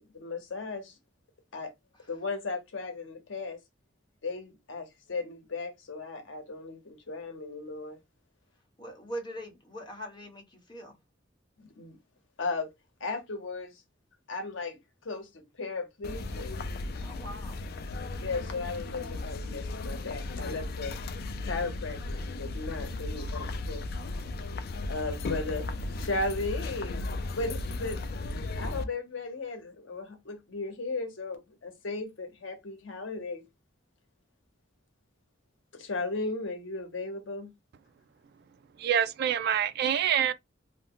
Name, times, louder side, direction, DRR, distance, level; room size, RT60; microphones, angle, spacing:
voice 1, 0.1-0.9 1.5-1.7 2.1-3.6 4.2-8.0 11.6-12.0 12.4-12.7 13.0-13.7 14.3-16.5 18.2-21.0 21.4-23.9 24.9-25.7 26.0-27.1 27.4-28.2 28.6-33.4 35.7-37.5, left 3 dB, 80° left, 0.8 m, -36 dB
voice 2, 8.8-11.0 17.0-17.6 23.1-23.6 23.9-24.3, equal, 25° left, 1.0 m, -43 dB
sound 1, 16.0-28.8, left 2 dB, 55° left, 0.4 m, -35 dB
voice 3, 38.8-40.3, right 9 dB, 55° right, 0.3 m, -26 dB
2.6 x 2.1 x 3.5 m
head